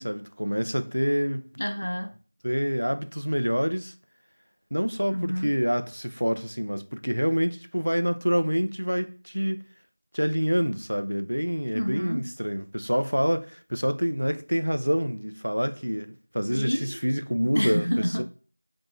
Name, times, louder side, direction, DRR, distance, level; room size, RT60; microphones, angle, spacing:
voice 1, 0.0-1.5 2.4-3.9 4.7-9.6 10.1-18.2, equal, 85° right, 0.5 m, -27 dB
voice 2, 1.6-2.2 5.1-5.5 11.7-12.3 16.5-17.0 17.5-18.2, equal, 85° left, 0.7 m, -28 dB
3.4 x 3.1 x 2.5 m
figure-of-eight pair, 180°, 0 cm